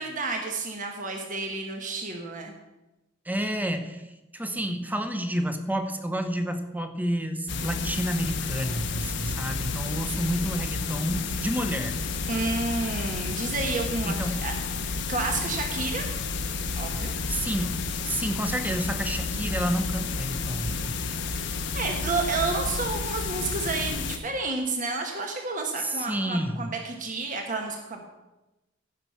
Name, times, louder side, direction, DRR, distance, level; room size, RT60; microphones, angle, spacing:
voice 1, 0.0-2.5 12.3-14.5 15.1-16.0 16.8-17.1 21.7-28.0, right 3 dB, 40° right, 2 dB, 1.3 m, -30 dB
voice 2, 3.3-4.0 4.3-11.9 14.1-14.4 17.0-21.0 25.8-26.7, equal, 10° right, 8 dB, 0.9 m, -30 dB
sound 1, 7.5-24.2, left 4 dB, 65° left, 1.0 m, -31 dB
15.0 x 5.8 x 5.8 m, 1.0 s
head